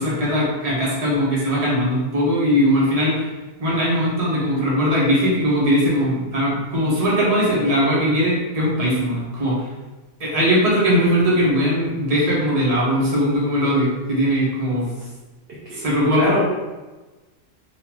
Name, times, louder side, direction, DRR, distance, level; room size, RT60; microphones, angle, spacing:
voice 1, 0.0-3.3 3.6-9.6 10.2-14.9 15.7-16.3, equal, 30° right, -6 dB, 1.1 m, -20 dB
voice 2, 15.6-16.4, equal, 50° right, -7 dB, 0.8 m, -26 dB
3.7 x 2.7 x 3.0 m, 1.2 s
omnidirectional pair, 1.5 m